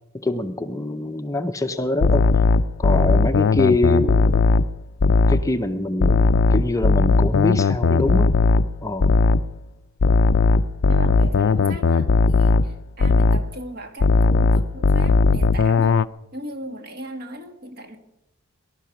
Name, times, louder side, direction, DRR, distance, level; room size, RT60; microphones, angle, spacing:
voice 1, 0.2-2.3 2.8-4.5 5.3-8.3 8.8-9.1, left 2 dB, 15° left, 0.6 m, -24 dB
sound 1, 2.0-5.5 6.0-9.5 10.0-13.5 14.0-16.0, left 4 dB, 60° left, 0.4 m, -17 dB
voice 2, 10.9-16.0 16.3-18.0, equal, 45° right, 1.8 m, -37 dB
19.5 x 11.5 x 5.9 m
head